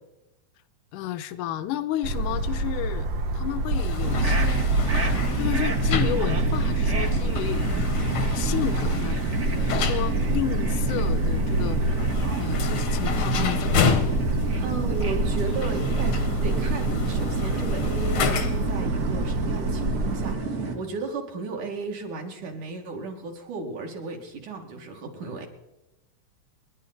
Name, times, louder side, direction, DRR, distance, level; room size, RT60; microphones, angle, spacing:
voice 1, 0.9-3.1 3.3-4.7 5.3-7.6 8.3-9.2 9.6-14.1, left 12 dB, 75° left, 13 dB, 2.1 m, -32 dB
sound 1, 2.0-20.3, right 2 dB, 90° right, 1.0 m, -26 dB
sound 2, 3.7-18.8, left 6 dB, 60° left, 1.5 m, -31 dB
sound 3, 4.0-20.8, right 3 dB, 45° right, 0.9 m, -30 dB
voice 2, 14.6-25.5, right 4 dB, 65° right, 1 dB, 3.4 m, -35 dB
29.0 x 11.0 x 4.1 m, 0.96 s
omnidirectional pair, 3.9 m